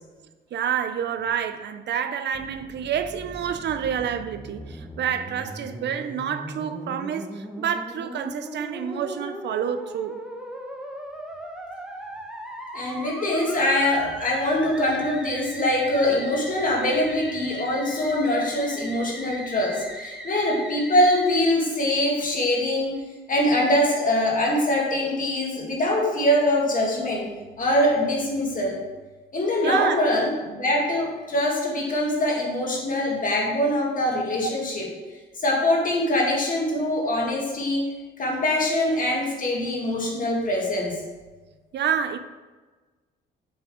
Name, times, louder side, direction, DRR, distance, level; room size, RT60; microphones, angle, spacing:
voice 1, 0.5-10.2 29.6-30.0 41.7-42.2, right 8 dB, 60° right, 0.5 m, -28 dB
Musical instrument, 2.3-21.4, equal, 5° right, 0.8 m, -39 dB
voice 2, 12.7-27.3 27.6-28.8 29.3-34.9 35.4-37.8 38.2-41.0, left 1 dB, 45° left, 2.0 m, -23 dB
7.3 x 3.5 x 4.9 m
cardioid pair, 90°, 20 cm